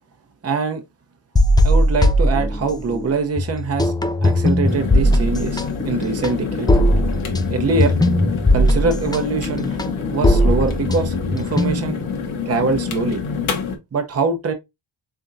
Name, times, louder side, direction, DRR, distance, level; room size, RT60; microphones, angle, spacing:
voice 1, 0.4-0.8 1.6-3.9 4.2-6.7 7.5-7.9 8.5-9.8 10.1-12.0 12.5-13.2 13.9-14.5, right 4 dB, 30° right, 0.8 m, -23 dB
sound 1, 1.4-3.1 3.4-12.0, left 1 dB, 10° left, 0.3 m, -18 dB
sound 2, 4.6-13.8, left 6 dB, 75° left, 1.2 m, -27 dB
3.6 x 3.5 x 2.6 m
cardioid pair, 90°, 49 cm